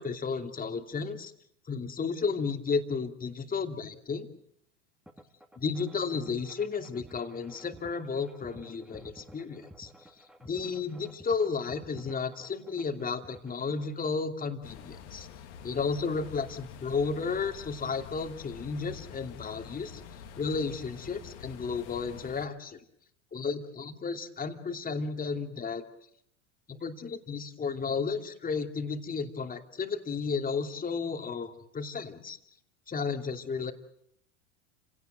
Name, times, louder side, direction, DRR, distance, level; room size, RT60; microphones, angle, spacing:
voice 1, 0.0-1.3 1.7-4.3 5.6-10.1 10.4-15.3 15.6-20.0 20.4-22.8 23.3-25.8 26.7-32.4 32.9-33.7, left 5 dB, 25° left, 6 dB, 2.8 m, -33 dB
sound 1, 5.1-14.0, equal, ahead, 2.6 m, -53 dB
sound 2, 14.6-22.5, left 8 dB, 65° left, 2.7 m, -47 dB
30.0 x 18.0 x 7.8 m, 0.71 s
hypercardioid pair, 85°, 37 cm